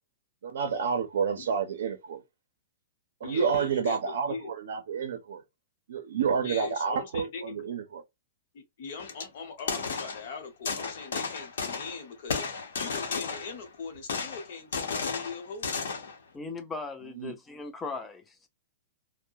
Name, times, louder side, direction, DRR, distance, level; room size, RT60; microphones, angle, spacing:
voice 1, 0.4-2.2 3.2-5.4 5.9-8.0 17.2-17.3, right 6 dB, 80° right, 0.5 m, -29 dB
voice 2, 3.2-4.5 6.4-7.6 8.5-16.0, left 5 dB, 50° left, 0.9 m, -41 dB
sound 1, 9.0-9.2 9.6-10.3 10.6-12.0 12.3-13.7 14.1-16.2, left 5 dB, 90° left, 0.8 m, -33 dB
voice 3, 16.3-18.5, left 4 dB, 10° left, 0.4 m, -38 dB
2.3 x 2.1 x 2.6 m
supercardioid pair, 165°, 0 cm